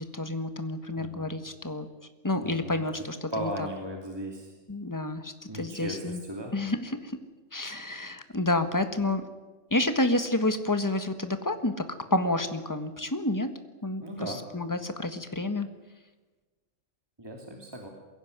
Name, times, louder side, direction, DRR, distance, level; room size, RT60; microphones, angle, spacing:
voice 1, 0.0-1.9 2.2-3.5 4.7-6.2 6.5-7.2 7.5-9.2 9.7-11.7 12.1-13.5 13.8-15.7, left 2 dB, 15° left, 9 dB, 1.5 m, -29 dB
voice 2, 1.0-1.3 2.4-2.8 3.3-4.5 5.5-6.6 14.0-14.4 17.2-17.9, right 1 dB, 20° right, 1 dB, 2.9 m, -37 dB
22.5 x 16.5 x 9.6 m, 1.3 s
omnidirectional pair, 1.3 m